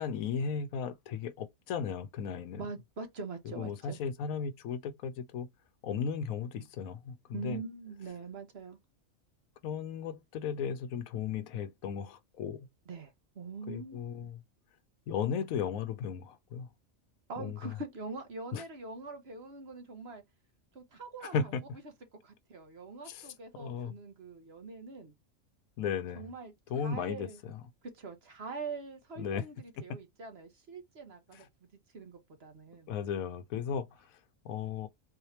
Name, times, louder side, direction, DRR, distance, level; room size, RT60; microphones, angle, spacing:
voice 1, 0.0-2.7 3.6-5.5 5.8-7.6 9.6-12.7 13.7-14.4 15.1-16.7 17.4-17.7 18.5-18.6 21.3-21.6 23.1-23.3 23.6-23.9 25.8-26.3 26.7-27.6 29.2-29.4 31.3-31.4 32.9-33.9 34.4-34.9, left 7 dB, 90° left, 1.1 m, -35 dB
voice 2, 2.6-4.0 7.3-8.8 12.9-14.3 17.3-20.2 20.7-21.6 22.2-25.1 26.1-27.4 27.9-31.5 31.9-32.9, right 4 dB, 50° right, 1.3 m, -43 dB
4.1 x 3.2 x 2.7 m
omnidirectional pair, 1.4 m